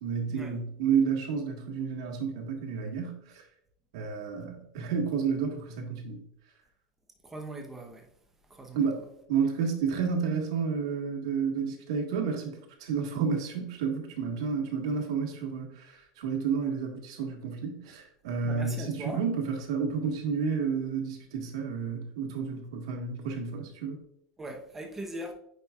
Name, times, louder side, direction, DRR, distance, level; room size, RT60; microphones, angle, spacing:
voice 1, 0.0-3.2 3.9-6.2 8.7-9.0 9.3-24.0, right 6 dB, 90° right, 1.5 m, -31 dB
voice 2, 7.2-8.1 8.5-9.0 17.9-18.0 18.4-19.2 24.4-25.3, right 1 dB, 10° right, 0.8 m, -40 dB
8.5 x 5.1 x 2.3 m
supercardioid pair, 160°, 3 cm